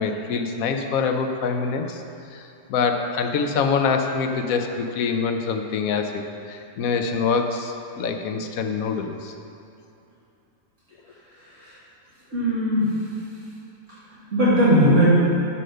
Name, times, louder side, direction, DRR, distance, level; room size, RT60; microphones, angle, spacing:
voice 1, 0.0-2.0 2.3-9.3, left 5 dB, 90° left, 6 dB, 1.1 m, -25 dB
voice 2, 12.3-12.9 14.1-15.1, equal, 60° right, -11 dB, 2.6 m, -19 dB
6.6 x 5.6 x 6.4 m, 2.6 s
omnidirectional pair, 1.4 m